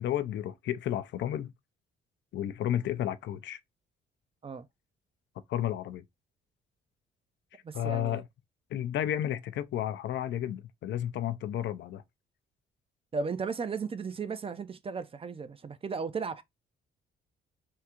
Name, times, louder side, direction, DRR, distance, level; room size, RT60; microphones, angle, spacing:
voice 1, 0.0-1.5 2.3-3.6 5.5-6.0 7.7-8.2 8.7-12.0, left 11 dB, 70° left, 0.5 m, -32 dB
voice 2, 7.6-8.2 13.1-16.4, right 5 dB, 30° right, 0.4 m, -35 dB
3.6 x 2.3 x 2.8 m
cardioid pair, 90°, 20 cm